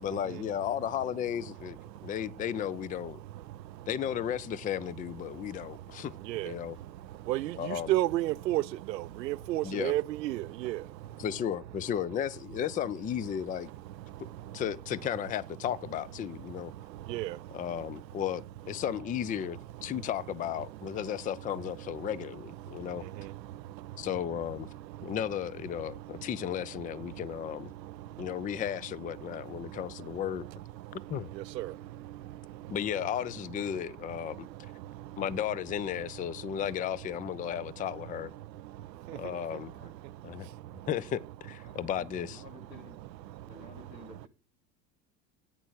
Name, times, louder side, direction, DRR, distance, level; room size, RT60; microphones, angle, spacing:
voice 1, 0.0-3.2 3.9-6.1 6.4-6.8 7.6-7.9 9.6-9.9 11.2-13.7 14.5-16.7 17.5-23.1 24.0-24.7 25.0-27.7 28.2-30.5 31.1-31.3 32.7-34.5 35.2-38.3 39.1-39.7 40.2-40.5 40.9-42.4, left 9 dB, 15° left, 0.4 m, -34 dB
voice 2, 7.3-8.6 8.9-10.8 17.1-17.3 31.6-31.7, right 16 dB, 80° right, 0.7 m, -30 dB
voice 3, 39.5-39.9 41.6-43.0 43.5-44.3, left 2 dB, 90° left, 2.8 m, -53 dB
10.5 x 8.8 x 4.7 m
hypercardioid pair, 75°, 50 cm